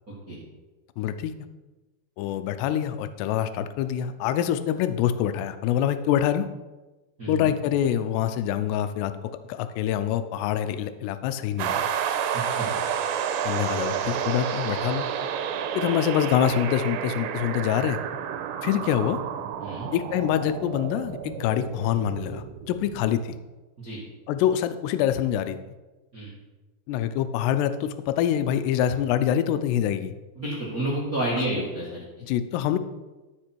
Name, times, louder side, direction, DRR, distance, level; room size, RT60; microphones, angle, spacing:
voice 1, 1.0-1.3 2.2-6.5 7.3-9.1 9.5-11.8 13.4-15.1 15.8-18.0 18.6-19.2 19.9-23.4 24.3-25.6 26.9-30.1 32.2-32.8, left 10 dB, 80° left, 10 dB, 2.6 m, -25 dB
voice 2, 7.2-7.5 12.3-12.7 19.6-19.9 23.8-24.0 26.1-26.3 30.3-32.0, right 1 dB, 75° right, -6 dB, 0.8 m, -30 dB
sound 1, 11.6-23.2, right 8 dB, 90° right, 3.0 m, -30 dB
13.5 x 5.3 x 4.5 m, 1.2 s
omnidirectional pair, 5.0 m